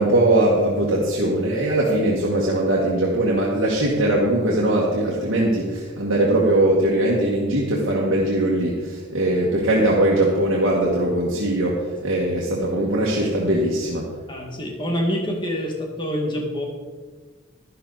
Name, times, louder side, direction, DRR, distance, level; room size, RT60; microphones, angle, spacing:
voice 1, 0.0-14.1, right 1 dB, 75° right, -4 dB, 1.9 m, -20 dB
voice 2, 14.3-16.6, equal, 25° left, 0 dB, 2.0 m, -26 dB
12.0 x 12.0 x 4.1 m, 1.4 s
head